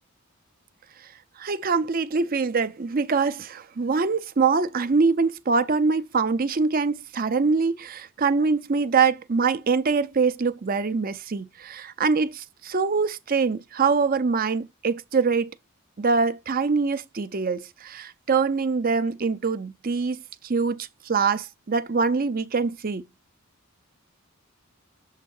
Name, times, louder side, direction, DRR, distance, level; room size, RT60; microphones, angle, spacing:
voice 1, 1.4-15.5 16.0-23.0, right 4 dB, 40° right, 0.5 m, -24 dB
7.3 x 2.6 x 5.4 m
head